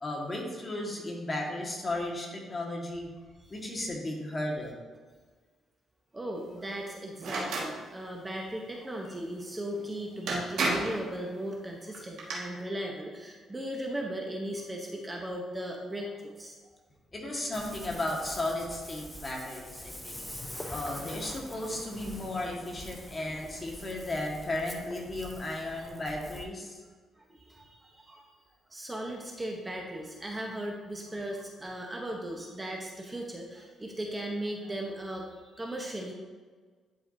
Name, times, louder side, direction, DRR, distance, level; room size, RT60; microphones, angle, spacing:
voice 1, 0.0-3.1 3.5-4.8 17.1-20.2 20.7-26.8, left 1 dB, 25° left, -1 dB, 1.7 m, -35 dB
voice 2, 6.1-16.5 20.0-20.3 20.5-20.6 27.3-28.2 28.7-36.1, right 1 dB, 20° right, 0 dB, 0.9 m, -37 dB
sound 1, 7.2-7.7 9.8-9.9 10.3-11.0 11.9-12.3, right 2 dB, 80° right, 1.7 m, -30 dB
Ocean, 17.5-26.4, equal, 10° left, 0.9 m, -44 dB
11.0 x 4.7 x 2.7 m, 1.5 s
cardioid pair, 90°, 0 cm